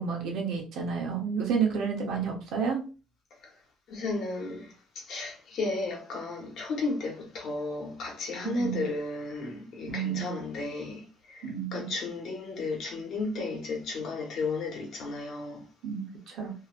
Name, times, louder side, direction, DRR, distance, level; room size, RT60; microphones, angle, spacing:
voice 1, 0.0-2.8 8.4-8.8 9.9-10.4 11.4-11.9 15.8-16.5, right 6 dB, 70° right, 0.9 m, -30 dB
voice 2, 3.9-15.7, left 3 dB, 50° left, 1.1 m, -34 dB
3.1 x 2.8 x 2.5 m
cardioid pair, 175°, 0 cm